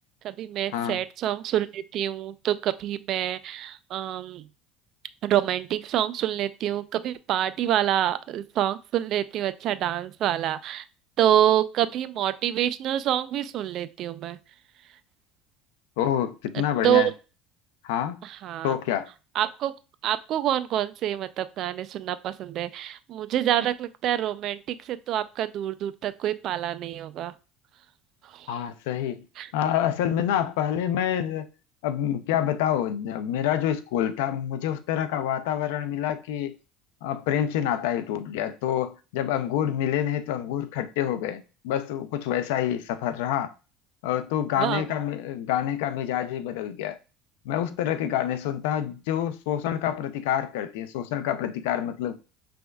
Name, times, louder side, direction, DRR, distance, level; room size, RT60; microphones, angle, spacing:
voice 1, 0.2-4.5 5.2-10.8 11.2-14.4 16.5-17.1 18.2-18.8 19.3-19.7 20.0-27.3 28.2-28.6 29.4-29.5 44.6-44.9, right 11 dB, 55° right, 0.3 m, -27 dB
voice 2, 16.0-17.1 17.8-18.2 18.6-19.1 28.5-29.2 29.5-31.5 31.8-36.6 37.0-43.5 44.0-47.0 47.5-52.2, left 10 dB, 90° left, 0.5 m, -27 dB
6.1 x 3.4 x 2.3 m
supercardioid pair, 120°, 0 cm